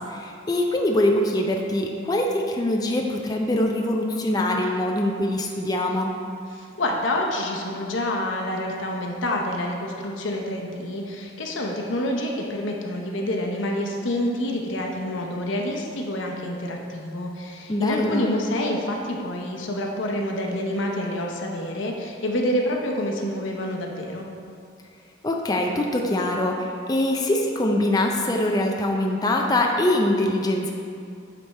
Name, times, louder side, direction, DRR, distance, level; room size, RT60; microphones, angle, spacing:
voice 1, 0.0-6.1 17.7-18.3 25.2-30.7, left 1 dB, 20° left, 1 dB, 0.4 m, -23 dB
voice 2, 6.5-24.3, left 1 dB, 85° left, 0 dB, 0.8 m, -27 dB
9.0 x 3.4 x 4.2 m, 2.4 s
head